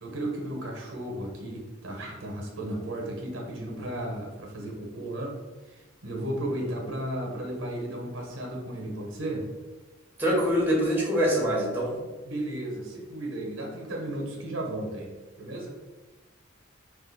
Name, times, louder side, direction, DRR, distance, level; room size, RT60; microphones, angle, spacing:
voice 1, 0.0-5.4 5.6-9.5 12.2-15.1 15.4-15.7, right 1 dB, 85° right, 0 dB, 0.7 m, -34 dB
voice 2, 10.2-11.9, equal, 10° right, -5 dB, 0.8 m, -24 dB
2.4 x 2.2 x 3.8 m, 1.2 s
head